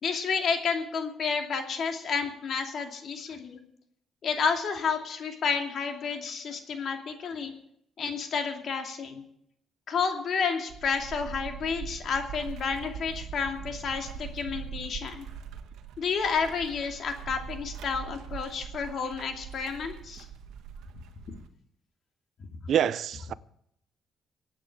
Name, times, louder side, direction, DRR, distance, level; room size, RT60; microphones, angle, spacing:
voice 1, 0.0-3.6 4.2-7.5 8.0-9.2 9.9-15.3 16.0-20.2 21.3-21.4, left 5 dB, 60° left, 2.6 m, -30 dB
sound 1, 10.7-21.5, right 7 dB, 90° right, 1.4 m, -42 dB
voice 2, 22.7-23.3, right 9 dB, 65° right, 0.6 m, -26 dB
24.0 x 8.9 x 4.9 m
cardioid pair, 90°, 0 cm